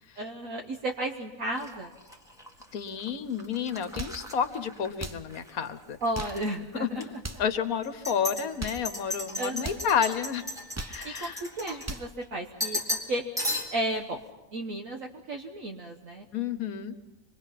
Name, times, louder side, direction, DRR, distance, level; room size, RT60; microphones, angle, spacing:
voice 1, 0.2-1.9 6.0-7.2 9.4-9.8 11.0-13.2 13.7-14.2 14.5-16.2, right 1 dB, 60° right, 3 dB, 1.5 m, -33 dB
sound 1, 1.5-5.5 5.8-6.5 6.9-7.0 7.8-12.2 12.6-13.1 13.4-13.9, left 1 dB, ahead, 1.9 m, -36 dB
voice 2, 2.7-6.0 6.8-7.1 7.4-10.4 10.9-11.4 16.3-16.9, left 7 dB, 65° left, 11 dB, 1.5 m, -30 dB
sound 2, 3.8-4.3 4.9-5.3 6.0-6.5 7.1-7.5 8.4-8.9 9.6-9.9 10.5-11.1 11.6-12.2, right 2 dB, 25° right, 0.3 m, -39 dB
26.0 x 21.5 x 5.8 m, 1.0 s
omnidirectional pair, 1.6 m